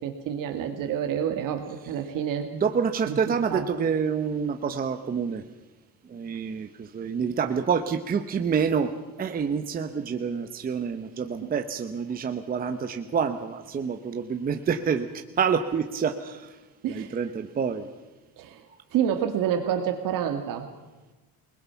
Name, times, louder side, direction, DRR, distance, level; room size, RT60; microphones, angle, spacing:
voice 1, 0.0-2.5 3.1-3.2 3.5-3.9 16.8-17.2 18.4-18.6 18.9-20.7, right 9 dB, 55° right, 6 dB, 1.8 m, -28 dB
voice 2, 2.5-5.4 6.1-8.9 9.2-16.6 16.9-17.9, right 6 dB, 25° right, 8 dB, 0.9 m, -27 dB
29.0 x 20.0 x 5.8 m, 1.2 s
cardioid pair, 175°, 38 cm